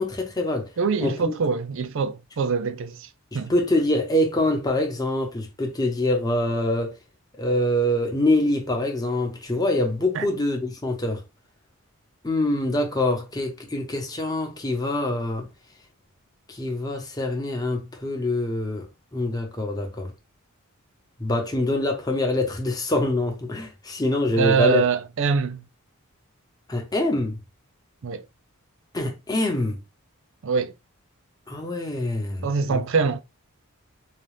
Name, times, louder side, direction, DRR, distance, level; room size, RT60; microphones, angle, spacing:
voice 1, 0.0-0.7 1.0-1.3 3.3-6.9 7.4-11.2 12.2-15.5 16.5-20.1 21.2-24.8 26.7-27.4 28.9-29.8 31.5-32.8, left 1 dB, 15° left, 0.9 m, -25 dB
voice 2, 0.8-3.1 3.3-3.5 10.1-10.3 24.4-25.6 28.0-28.2 30.4-30.7 32.4-33.2, right 5 dB, 60° right, 0.4 m, -24 dB
4.0 x 2.3 x 3.2 m
head